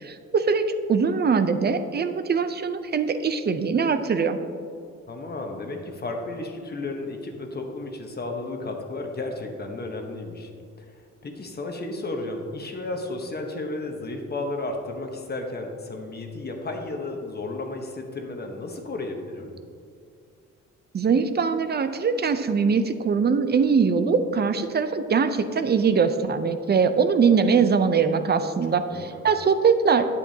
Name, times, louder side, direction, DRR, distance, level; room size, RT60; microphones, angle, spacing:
voice 1, 0.0-4.4 20.9-30.1, right 5 dB, 35° right, 10 dB, 0.5 m, -22 dB
voice 2, 5.1-10.5 10.9-19.5 28.9-29.2, left 2 dB, 35° left, 3 dB, 1.1 m, -33 dB
8.9 x 8.3 x 2.8 m, 2.4 s
cardioid pair, 90°, 30 cm